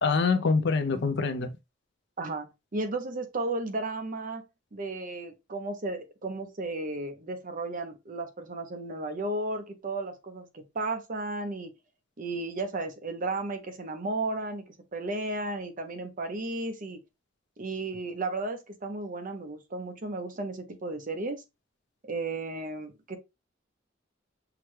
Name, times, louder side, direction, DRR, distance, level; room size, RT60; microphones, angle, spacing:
voice 1, 0.0-1.5, left 4 dB, 60° left, 0.5 m, -25 dB
voice 2, 2.2-4.4 4.7-11.7 12.2-17.0 17.6-21.4 22.0-23.2, right 2 dB, 45° right, 0.7 m, -34 dB
5.8 x 2.2 x 3.1 m
head